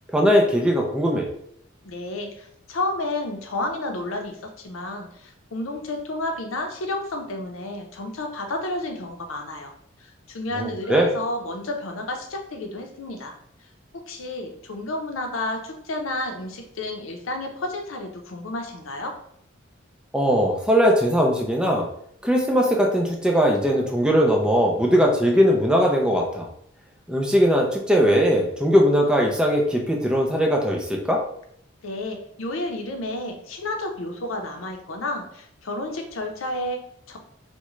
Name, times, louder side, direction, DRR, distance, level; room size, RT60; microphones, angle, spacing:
voice 1, 0.1-1.3 10.5-11.1 20.1-21.9 22.2-26.5 27.1-31.2, equal, 5° right, 0 dB, 0.4 m, -20 dB
voice 2, 1.8-9.7 10.0-13.3 13.9-19.2 31.8-37.2, left 2 dB, 90° left, 3 dB, 0.6 m, -31 dB
3.6 x 2.1 x 3.0 m, 0.70 s
head